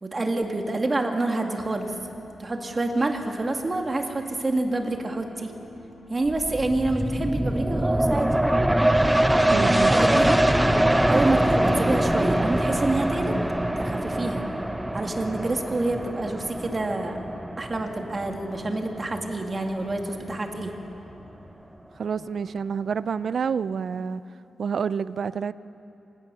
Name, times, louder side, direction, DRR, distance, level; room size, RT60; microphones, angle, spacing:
voice 1, 0.0-1.9 2.4-5.5 6.1-8.3 9.9-10.4 11.1-13.4 13.8-14.4 14.9-17.2 17.6-20.7, right 2 dB, 30° right, 3 dB, 2.1 m, -27 dB
sound 1, 1.6-21.5, left 2 dB, 70° left, 4.7 m, -47 dB
sound 2, 6.3-19.6 20.0-20.1, right 1 dB, 10° right, 0.7 m, -23 dB
voice 2, 9.5-9.9 22.0-24.2 24.6-25.5, right 6 dB, 60° right, 16 dB, 0.5 m, -28 dB
26.5 x 17.0 x 6.9 m, 3.0 s
cardioid pair, 100°, 0 cm